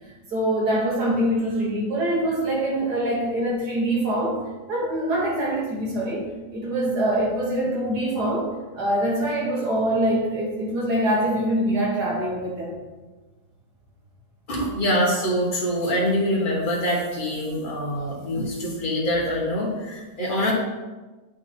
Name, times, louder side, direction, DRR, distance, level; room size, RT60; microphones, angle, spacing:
voice 1, 0.3-4.4 4.7-6.3 6.5-8.5 8.8-12.7, right 1 dB, 80° right, -3 dB, 2.1 m, -24 dB
voice 2, 14.5-20.5, equal, 35° left, -3 dB, 1.4 m, -24 dB
8.5 x 4.1 x 3.4 m, 1.2 s
omnidirectional pair, 1.7 m